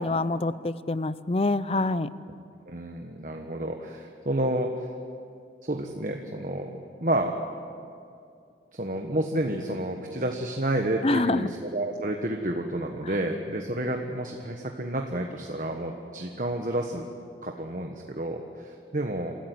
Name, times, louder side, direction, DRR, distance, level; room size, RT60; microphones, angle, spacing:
voice 1, 0.0-2.1 11.0-11.5 13.0-13.1, left 2 dB, 35° left, 15 dB, 0.6 m, -26 dB
voice 2, 2.7-4.7 5.6-7.4 8.7-17.1 17.4-19.4, right 1 dB, 45° right, 3 dB, 1.3 m, -30 dB
27.5 x 15.0 x 9.5 m, 2.4 s
head